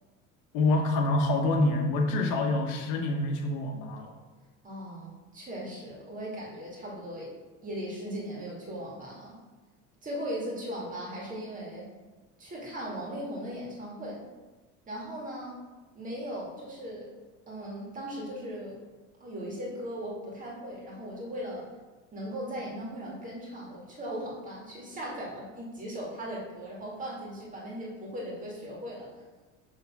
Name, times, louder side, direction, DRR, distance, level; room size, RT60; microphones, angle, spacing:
voice 1, 0.5-4.1, left 2 dB, 70° left, 3 dB, 1.1 m, -26 dB
voice 2, 4.6-7.3 7.6-9.4 10.0-11.9 12.4-14.3 14.9-15.6 15.9-17.1 17.5-18.8 19.2-21.7 22.1-29.2, equal, 25° right, -4 dB, 2.0 m, -38 dB
6.6 x 3.5 x 5.9 m, 1.3 s
cardioid pair, 155°, 32 cm